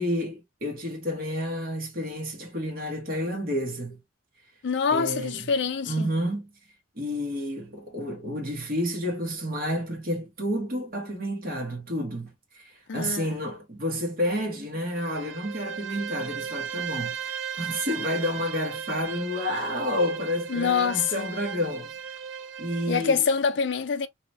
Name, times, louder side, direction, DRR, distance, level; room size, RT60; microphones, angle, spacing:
voice 1, 0.0-4.0 4.9-5.5 5.8-6.5 7.0-21.9 22.6-23.2, equal, 50° right, 1.0 m, -30 dB
voice 2, 4.6-6.1 12.9-13.3 20.5-21.3 22.9-24.1, left 6 dB, 60° left, 0.5 m, -25 dB
Bowed string instrument, 14.8-23.1, right 8 dB, 80° right, 0.4 m, -36 dB
2.9 x 2.1 x 2.6 m
head